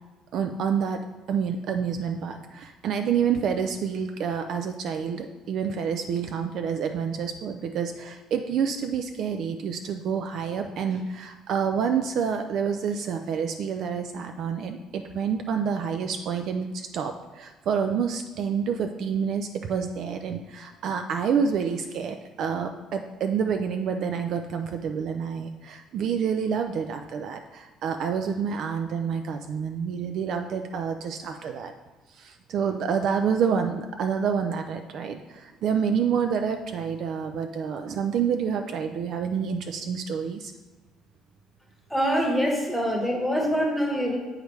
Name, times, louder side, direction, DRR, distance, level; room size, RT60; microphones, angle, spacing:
voice 1, 0.3-31.7 32.1-40.5, right 7 dB, 50° right, 6 dB, 0.4 m, -28 dB
voice 2, 41.9-44.2, equal, ahead, -1 dB, 1.2 m, -24 dB
8.0 x 4.9 x 3.1 m, 1.3 s
cardioid pair, 155°, 0 cm